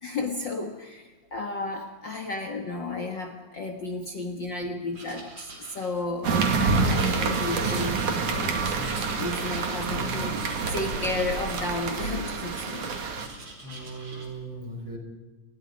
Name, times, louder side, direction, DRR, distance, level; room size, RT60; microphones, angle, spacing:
voice 1, 0.0-8.1 8.3-12.9, left 3 dB, 45° left, 3 dB, 1.9 m, -33 dB
Writing, 4.9-6.3 6.9-8.5 8.8-9.9 10.4-12.1 12.4-14.3, right 2 dB, 60° right, 5.8 m, -43 dB
sound 1, 6.2-13.3, right 4 dB, 85° right, 3.9 m, -27 dB
voice 2, 13.6-15.0, right 2 dB, 45° right, 3 dB, 5.7 m, -38 dB
28.0 x 21.0 x 5.3 m, 1.2 s
omnidirectional pair, 3.4 m